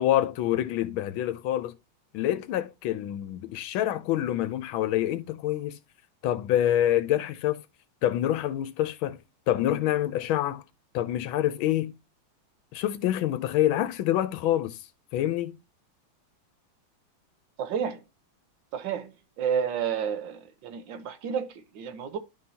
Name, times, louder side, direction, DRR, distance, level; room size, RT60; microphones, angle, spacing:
voice 1, 0.0-1.7 2.1-5.8 6.2-7.6 8.0-9.2 9.5-10.6 10.9-11.9 12.7-14.8 15.1-15.5, left 12 dB, 85° left, 1.4 m, -26 dB
voice 2, 17.6-18.0 18.7-22.2, right 7 dB, 70° right, 1.5 m, -31 dB
11.0 x 3.9 x 2.7 m
omnidirectional pair, 2.2 m